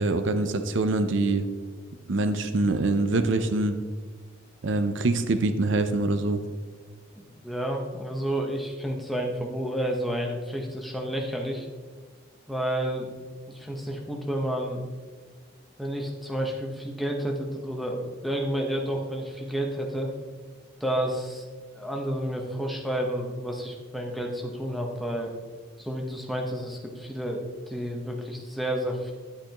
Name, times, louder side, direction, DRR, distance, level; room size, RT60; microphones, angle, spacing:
voice 1, 0.0-1.4 2.1-3.8 4.6-6.4, right 2 dB, 65° right, 9 dB, 0.5 m, -24 dB
voice 2, 7.3-11.7 12.5-13.1 13.5-14.8 15.8-20.1 20.8-21.5 21.8-25.3 25.8-29.1, right 1 dB, ahead, 0 dB, 0.9 m, -30 dB
10.5 x 8.5 x 3.0 m, 1.4 s
head